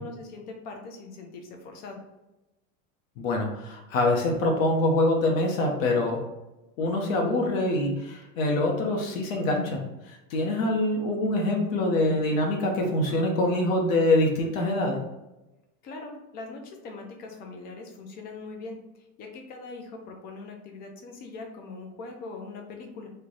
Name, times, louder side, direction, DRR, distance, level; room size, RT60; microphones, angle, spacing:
voice 1, 0.0-2.0 15.8-18.8 19.2-23.1, left 3 dB, 25° left, 3 dB, 0.4 m, -41 dB
voice 2, 3.2-6.2 6.8-9.8 10.1-15.0, left 2 dB, 70° left, 1 dB, 0.9 m, -25 dB
3.3 x 2.2 x 3.9 m, 0.97 s
supercardioid pair, 155°, 41 cm